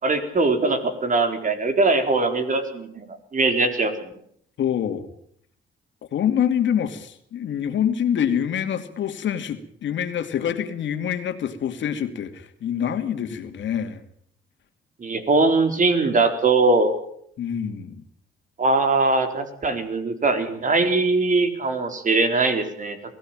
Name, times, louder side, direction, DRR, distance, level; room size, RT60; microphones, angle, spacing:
voice 1, 0.0-4.1 15.0-16.9 18.6-23.0, right 3 dB, 40° right, 8 dB, 4.3 m, -21 dB
voice 2, 4.6-5.1 6.1-14.0 17.4-18.0, left 9 dB, 70° left, 8 dB, 2.6 m, -26 dB
22.5 x 16.0 x 9.1 m, 0.66 s
cardioid pair, 90°, 20 cm